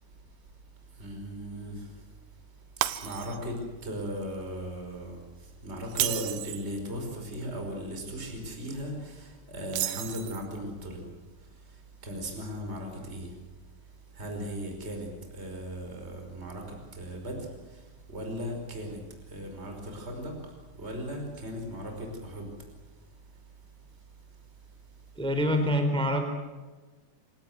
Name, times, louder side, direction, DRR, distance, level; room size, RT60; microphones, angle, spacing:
voice 1, 1.0-1.9 2.8-3.6 3.8-5.2 5.6-11.0 12.0-13.3 14.2-16.6 16.9-17.5 18.1-19.0 19.3-20.3 20.8-22.5, equal, 15° right, 3 dB, 5.2 m, -37 dB
Shatter, 2.8-3.6 4.0-4.2 5.8-6.7 9.7-10.6, right 13 dB, 70° right, 2.4 m, -32 dB
voice 2, 25.2-26.2, equal, ahead, 5 dB, 3.2 m, -25 dB
27.5 x 18.0 x 8.0 m, 1.3 s
omnidirectional pair, 4.9 m